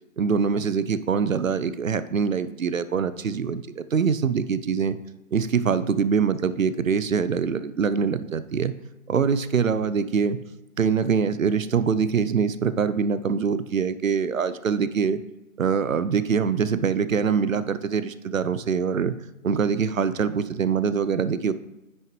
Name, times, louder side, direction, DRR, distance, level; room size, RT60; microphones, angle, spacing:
voice 1, 0.2-5.0 5.3-8.7 9.1-10.4 10.8-15.2 15.6-19.2 19.4-21.5, right 6 dB, 70° right, 14 dB, 0.7 m, -24 dB
10.0 x 6.4 x 3.1 m, 0.96 s
figure-of-eight pair, 155°, 41 cm